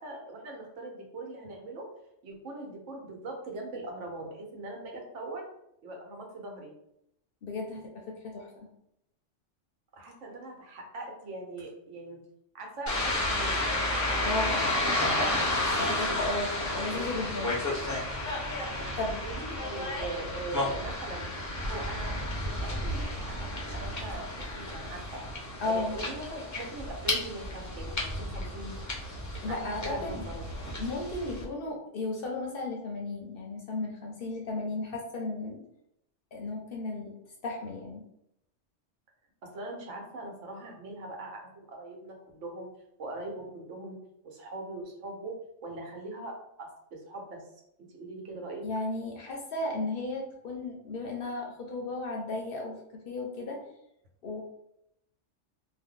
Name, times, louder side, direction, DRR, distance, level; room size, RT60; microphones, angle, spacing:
voice 1, 0.0-1.9 2.2-5.5 5.8-6.7 9.9-12.2 12.5-13.7 14.2-15.1 19.2-21.3 21.6-24.3 24.5-25.2 25.7-28.8 29.5-30.5 39.5-42.7 43.0-44.0 44.2-45.3 45.6-47.4 47.9-48.7, right 2 dB, 80° right, 0 dB, 1.1 m, -41 dB
voice 2, 7.4-8.7 14.2-14.6 15.8-17.5 19.0-19.2 25.6-26.0 29.4-30.3 30.8-35.6 36.3-37.1 37.4-38.0 48.6-53.6 54.2-54.4, left 2 dB, 60° left, 0 dB, 0.7 m, -34 dB
sound 1, 12.9-31.4, left 1 dB, 20° left, 0.4 m, -32 dB
2.6 x 2.1 x 3.6 m, 0.77 s
omnidirectional pair, 1.3 m